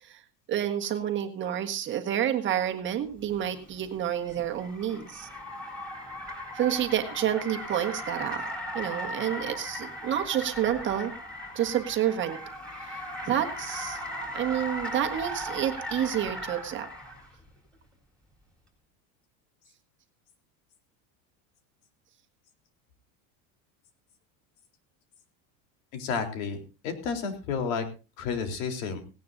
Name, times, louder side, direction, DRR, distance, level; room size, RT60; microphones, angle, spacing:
voice 1, 0.5-5.3 6.5-8.4 8.7-11.1 11.6-12.4 12.8-14.0 14.3-16.9, right 10 dB, 30° right, 6 dB, 1.6 m, -29 dB
Car, 3.4-17.3, equal, 5° left, 4.0 m, -38 dB
voice 2, 25.9-27.8 28.2-29.0, left 5 dB, 80° left, 6 dB, 3.8 m, -31 dB
17.5 x 17.5 x 2.7 m, 0.31 s
cardioid pair, 170°, 40 cm